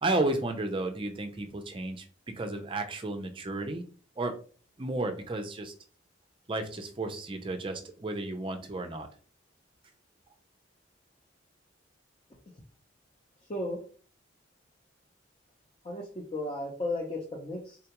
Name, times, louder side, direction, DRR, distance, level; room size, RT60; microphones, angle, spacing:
voice 1, 0.0-2.0 2.4-3.8 4.2-4.3 4.8-5.7 6.5-9.1, right 2 dB, 25° right, 6 dB, 0.4 m, -32 dB
voice 2, 13.5-13.8 15.8-17.8, left 1 dB, 30° left, -3 dB, 0.6 m, -34 dB
3.7 x 2.3 x 2.9 m, 0.41 s
head